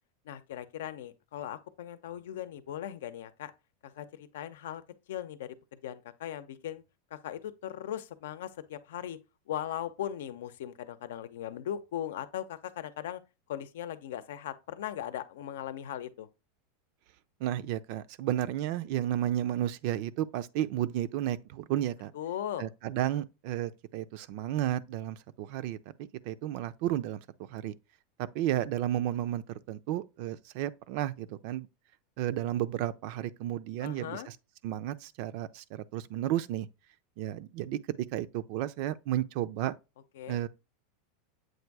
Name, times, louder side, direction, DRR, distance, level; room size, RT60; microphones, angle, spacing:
voice 1, 0.2-3.5 3.8-4.8 5.1-6.8 7.1-9.2 9.5-13.2 13.5-16.3 22.1-22.7 33.8-34.3 40.1-40.4, left 11 dB, 85° left, 0.7 m, -39 dB
voice 2, 17.4-22.1 22.6-27.2 27.5-27.7 28.2-31.7 32.2-34.3 34.6-36.7 37.2-39.7 40.3-40.5, right 12 dB, 55° right, 0.4 m, -32 dB
7.8 x 2.6 x 4.6 m
supercardioid pair, 145°, 0 cm